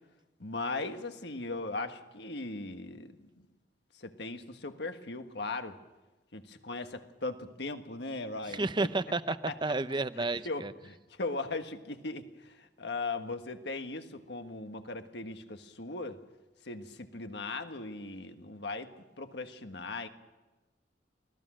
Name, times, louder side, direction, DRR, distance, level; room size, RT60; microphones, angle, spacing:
voice 1, 0.4-3.2 3.9-5.8 6.3-8.7 9.3-9.5 10.2-16.2 16.6-18.9 19.2-20.1, left 3 dB, 70° left, 7 dB, 1.6 m, -38 dB
voice 2, 8.5-10.7, right 3 dB, 25° right, 13 dB, 0.7 m, -31 dB
25.0 x 18.0 x 6.3 m, 1.1 s
head